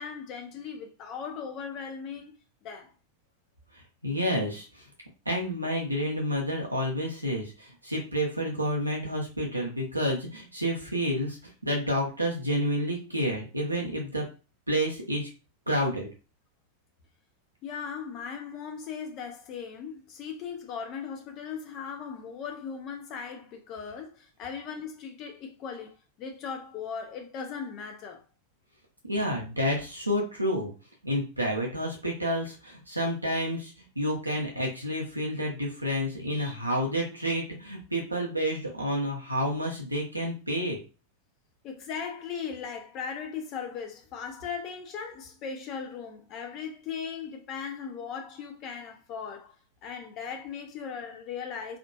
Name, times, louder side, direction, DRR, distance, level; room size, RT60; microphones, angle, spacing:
voice 1, 0.0-2.4 2.6-2.9 17.6-28.2 41.6-49.5 49.8-51.8, left 6 dB, 35° left, 0.5 m, -38 dB
voice 2, 4.0-4.8 5.3-14.3 14.7-15.3 15.7-16.1 29.1-30.7 31.0-40.8, equal, 85° right, 0.7 m, -29 dB
3.6 x 2.4 x 2.2 m
figure-of-eight pair, 90°, 0 cm